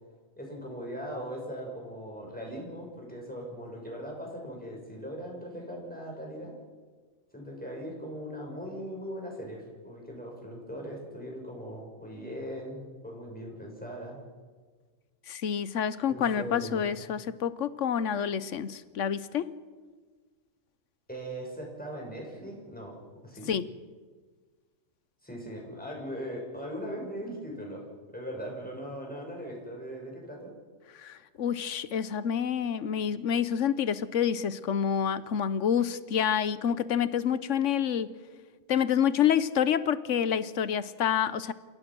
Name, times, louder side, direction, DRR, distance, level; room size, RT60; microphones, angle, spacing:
voice 1, 0.4-6.5 7.3-14.2 16.1-16.9 21.1-22.9 23.2-23.5 25.2-27.8 28.1-30.5, equal, 5° left, -1 dB, 6.0 m, -39 dB
voice 2, 15.3-19.5 23.5-23.7 31.0-38.1 38.7-41.5, left 8 dB, 65° left, 15 dB, 1.1 m, -28 dB
28.5 x 17.0 x 6.2 m, 1.4 s
omnidirectional pair, 1.4 m